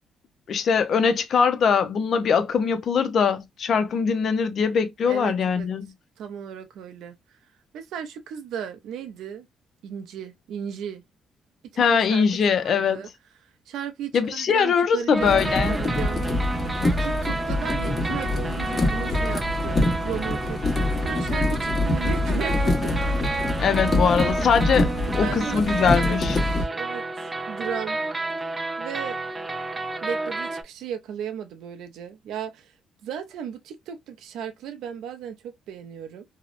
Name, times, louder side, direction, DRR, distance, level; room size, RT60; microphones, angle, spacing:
voice 1, 0.5-5.9 11.8-13.0 14.1-15.7 23.6-26.4, left 6 dB, 60° left, 0.5 m, -22 dB
voice 2, 5.0-5.7 6.2-7.4 7.7-9.5 9.8-11.0 11.7-12.3 12.6-13.1 13.7-16.7 17.0-22.9 24.2-24.5 25.2-28.0 28.8-29.2 30.0-32.7 33.0-36.2, right 8 dB, 85° right, 0.4 m, -35 dB
sound 1, 15.1-30.6, right 2 dB, 20° right, 0.4 m, -31 dB
sound 2, 15.2-26.6, left 2 dB, 35° left, 1.0 m, -25 dB
2.7 x 2.0 x 2.3 m
cardioid pair, 90°, 0 cm